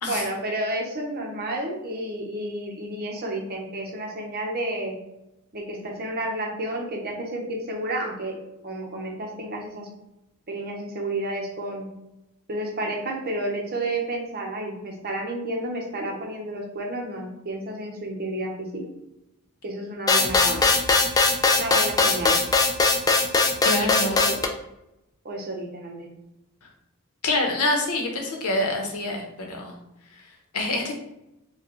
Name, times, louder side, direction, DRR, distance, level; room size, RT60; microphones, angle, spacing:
voice 1, 0.1-4.9 5.5-8.4 8.6-9.9 10.5-11.9 12.5-18.7 19.6-20.7 21.5-22.4 24.0-24.4 25.2-26.1, right 1 dB, 45° right, 0 dB, 0.9 m, -31 dB
sound 1, 20.1-24.5, left 3 dB, 15° left, 0.3 m, -20 dB
voice 2, 23.6-24.2 27.2-29.8 30.5-30.9, left 2 dB, 85° left, 1 dB, 0.9 m, -26 dB
4.7 x 2.3 x 3.0 m, 0.90 s
head